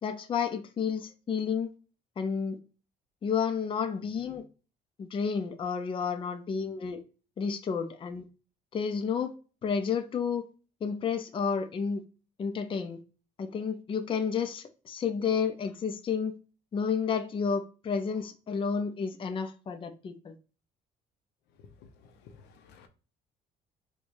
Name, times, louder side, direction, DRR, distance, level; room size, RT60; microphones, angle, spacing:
voice 1, 0.0-1.7 2.2-2.6 3.2-4.4 5.0-7.0 7.4-8.2 8.7-9.3 9.6-10.4 10.8-12.0 12.4-13.0 13.4-16.4 16.7-20.3, left 6 dB, 30° left, 0.5 m, -31 dB
voice 2, 22.0-22.9, left 5 dB, 80° left, 0.7 m, -54 dB
4.6 x 2.3 x 2.5 m
cardioid pair, 110°, 17 cm